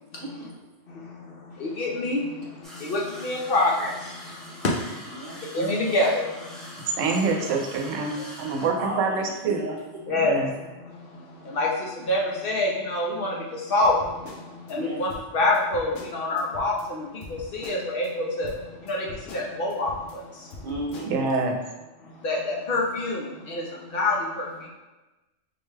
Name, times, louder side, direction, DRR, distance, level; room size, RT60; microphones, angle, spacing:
voice 1, 0.9-7.0 10.1-20.7 22.0-24.7, left 2 dB, 60° left, -2 dB, 0.6 m, -27 dB
sound 1, 2.6-8.7, left 1 dB, ahead, 0.4 m, -44 dB
voice 2, 5.1-5.4 7.7-7.8 8.2-8.3 8.8-10.2 14.7-15.1 20.6-21.2, right 1 dB, 50° right, -2 dB, 0.7 m, -35 dB
voice 3, 7.0-9.7 10.1-10.5 21.1-21.5, right 4 dB, 90° right, 3 dB, 0.9 m, -26 dB
sound 2, 13.8-14.7 15.1-16.9 17.2-18.1 18.4-20.2 20.5-21.1, left 2 dB, 90° left, 1.0 m, -43 dB
4.2 x 2.2 x 3.2 m, 1.1 s
omnidirectional pair, 1.3 m